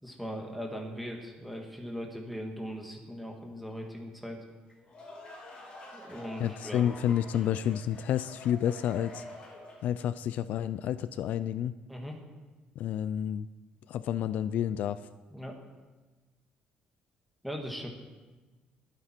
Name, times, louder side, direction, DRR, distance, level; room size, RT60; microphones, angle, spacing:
voice 1, 0.0-4.4 5.9-6.8 11.9-12.2 15.3-15.6 17.4-17.9, equal, ahead, 1 dB, 1.9 m, -39 dB
sound 1, 4.7-10.0, left 1 dB, 35° left, 3.5 m, -48 dB
voice 2, 6.4-9.2 9.8-11.8 12.8-13.5 13.9-15.0, left 10 dB, 60° left, 14 dB, 0.4 m, -30 dB
22.0 x 9.0 x 4.5 m, 1.3 s
cardioid pair, 160°, 3 cm